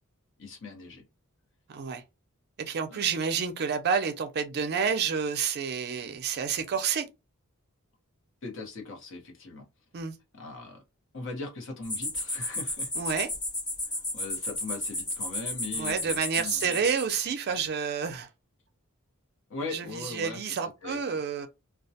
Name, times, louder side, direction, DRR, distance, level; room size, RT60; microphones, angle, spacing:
voice 1, 0.4-1.0 2.9-3.0 8.4-9.6 10.3-10.8 11.1-12.9 13.9-16.8 19.5-21.0, left 3 dB, 60° left, 0.9 m, -40 dB
voice 2, 2.6-7.1 9.9-10.1 13.0-13.3 15.7-18.3 19.7-21.5, right 6 dB, 50° right, 0.4 m, -29 dB
sound 1, 11.8-17.1, left 2 dB, 20° left, 0.9 m, -33 dB
2.2 x 2.1 x 2.7 m
head